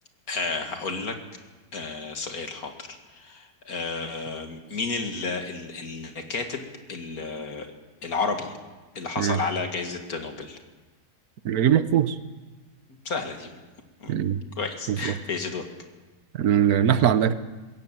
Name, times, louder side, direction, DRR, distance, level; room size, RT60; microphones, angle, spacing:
voice 1, 0.3-1.2 1.7-7.7 8.0-8.5 9.0-10.6 13.1-13.6 14.0-14.1 14.6-15.7, left 4 dB, 65° left, 5 dB, 2.6 m, -32 dB
voice 2, 11.4-12.2 14.1-14.4 14.9-15.1 16.3-17.3, right 9 dB, 70° right, 13 dB, 1.3 m, -21 dB
21.0 x 17.5 x 7.5 m, 1.2 s
omnidirectional pair, 1.7 m